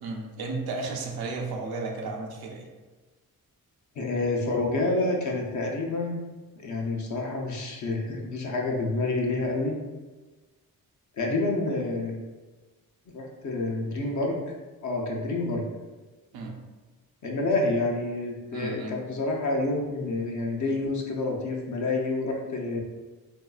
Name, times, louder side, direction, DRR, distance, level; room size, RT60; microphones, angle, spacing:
voice 1, 0.0-2.7 16.3-16.6 18.5-19.0, right 3 dB, 90° right, 1 dB, 0.6 m, -33 dB
voice 2, 4.0-6.2 6.6-9.8 11.2-12.2 13.1-14.4 14.8-15.6 17.2-22.8, left 2 dB, 55° left, 0 dB, 0.7 m, -28 dB
3.1 x 2.6 x 2.3 m, 1.3 s
cardioid pair, 85°, 35 cm